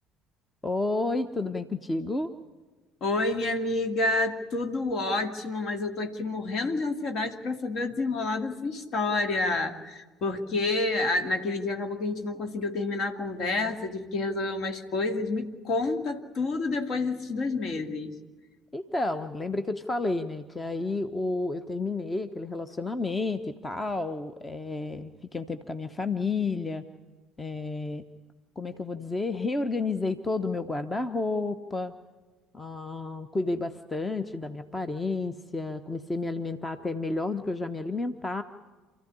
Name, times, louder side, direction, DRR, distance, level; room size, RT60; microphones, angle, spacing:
voice 1, 0.6-2.3 18.7-26.8 27.4-28.0 28.6-31.9 32.5-38.4, left 3 dB, 20° left, 10 dB, 1.1 m, -31 dB
voice 2, 3.0-18.2, left 2 dB, 50° left, 6 dB, 2.3 m, -29 dB
28.0 x 14.5 x 9.9 m, 1.3 s
figure-of-eight pair, 55°, 0 cm